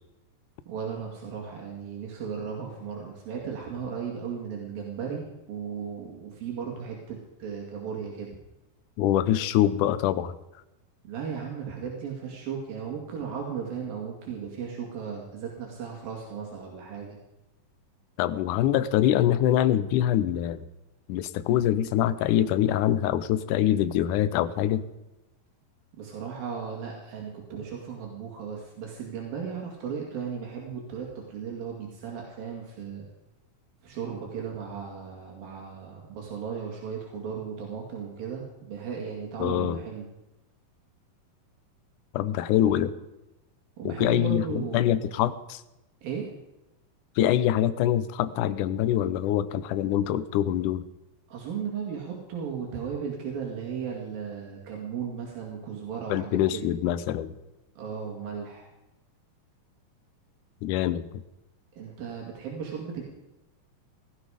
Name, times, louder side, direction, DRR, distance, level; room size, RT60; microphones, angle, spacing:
voice 1, 0.7-8.4 11.0-17.2 26.0-33.1 33.8-40.1 43.8-45.0 46.0-46.3 51.3-56.6 57.8-58.7 61.7-63.0, right 6 dB, 80° right, -1 dB, 4.1 m, -36 dB
voice 2, 9.0-10.4 18.2-20.6 21.1-24.8 39.4-39.8 42.1-42.9 43.9-45.6 47.2-50.8 56.1-57.4 60.6-61.2, left 11 dB, 75° left, 13 dB, 2.1 m, -24 dB
17.0 x 13.5 x 5.0 m, 0.97 s
omnidirectional pair, 4.0 m